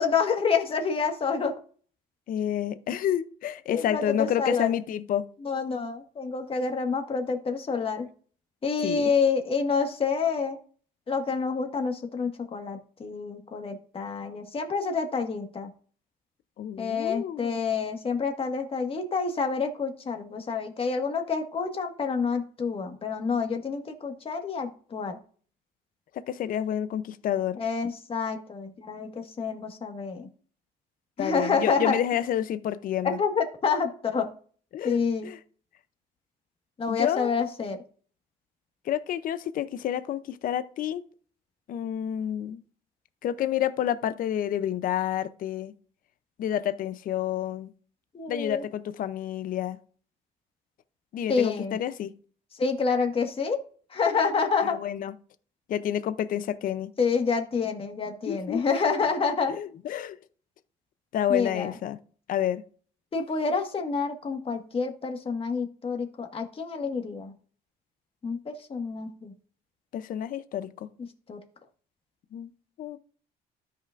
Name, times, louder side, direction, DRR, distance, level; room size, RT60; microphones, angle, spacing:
voice 1, 0.0-1.6 3.7-4.8 5.4-8.1 8.6-10.6 11.1-15.7 16.8-25.2 27.6-30.3 31.2-32.0 33.0-34.3 34.8-35.3 36.8-37.8 48.1-48.6 51.3-51.8 52.5-53.6 53.9-54.8 57.0-59.6 61.3-61.7 63.1-67.3 68.2-69.3 71.3-71.4, left 5 dB, 35° left, 1.7 m, -28 dB
voice 2, 2.3-5.3 8.8-9.1 16.6-17.6 26.1-27.6 31.2-33.2 34.7-35.4 36.9-37.3 38.8-41.0 41.7-42.6 43.2-45.7 46.4-47.7 48.3-49.8 51.1-52.1 54.6-55.1 55.7-56.9 58.3-58.8 59.5-60.2 61.1-62.0 62.3-62.6 69.9-70.9 72.3-72.5 72.8-73.0, left 10 dB, 55° left, 0.6 m, -29 dB
13.0 x 5.8 x 2.6 m
cardioid pair, 110°, 17 cm